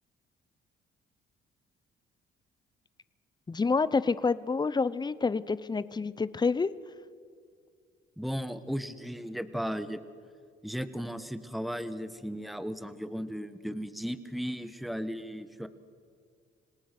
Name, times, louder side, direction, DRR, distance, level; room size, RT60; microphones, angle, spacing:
voice 1, 3.5-6.7, left 4 dB, 20° left, 17 dB, 0.8 m, -28 dB
voice 2, 8.2-10.0 10.6-15.7, equal, ahead, 12 dB, 1.3 m, -36 dB
27.0 x 18.5 x 6.1 m, 2.2 s
cardioid pair, 90°, 20 cm